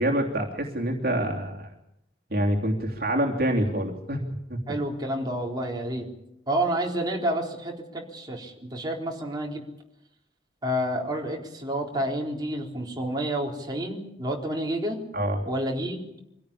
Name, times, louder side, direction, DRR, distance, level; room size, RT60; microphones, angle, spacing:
voice 1, 0.0-1.7 2.3-4.2 4.5-4.6 15.1-15.4, right 1 dB, 55° right, 1 dB, 3.2 m, -26 dB
voice 2, 4.7-6.1 6.5-9.6 10.6-15.0 15.5-16.0, right 1 dB, 25° right, -1 dB, 4.0 m, -29 dB
25.5 x 17.0 x 8.6 m, 0.82 s
head